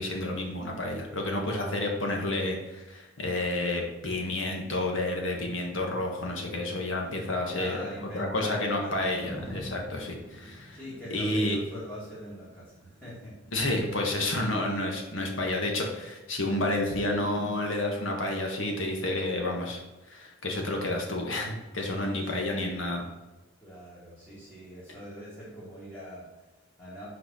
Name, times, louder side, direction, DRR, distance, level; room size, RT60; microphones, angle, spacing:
voice 1, 0.0-7.8 8.1-10.8 11.1-11.6 13.5-19.8 20.1-23.0, left 1 dB, 70° left, 1 dB, 1.7 m, -30 dB
voice 2, 7.5-9.1 10.7-13.4 20.8-21.1 23.6-27.2, equal, 5° left, -11 dB, 2.3 m, -43 dB
sound 1, 9.2-17.4 17.8-17.9, equal, 30° right, 1.7 m, -48 dB
6.3 x 4.6 x 5.7 m, 1.1 s
head